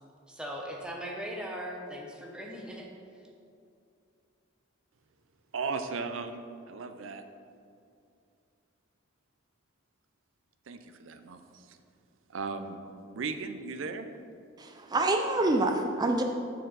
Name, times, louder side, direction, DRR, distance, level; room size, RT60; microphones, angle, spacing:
voice 1, 0.3-2.9, equal, 5° right, -1 dB, 0.7 m, -39 dB
voice 2, 5.5-7.2 10.7-11.8 12.3-12.8 13.1-14.1, right 4 dB, 80° right, 8 dB, 0.5 m, -36 dB
voice 3, 14.6-16.2, right 2 dB, 20° right, 4 dB, 0.4 m, -26 dB
6.6 x 6.4 x 4.0 m, 2.4 s
head